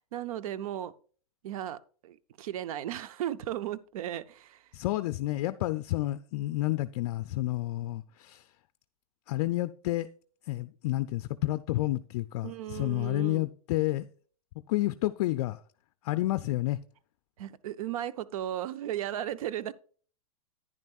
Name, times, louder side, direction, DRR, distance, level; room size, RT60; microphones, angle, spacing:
voice 1, 0.1-0.9 1.4-4.7 12.4-13.5 17.4-19.7, right 12 dB, 65° right, 0.6 m, -36 dB
voice 2, 4.7-8.4 9.3-10.1 10.5-14.1 14.7-15.6 16.0-16.8, left 17 dB, 55° left, 0.5 m, -30 dB
10.5 x 9.9 x 2.4 m
hypercardioid pair, 130°, 19 cm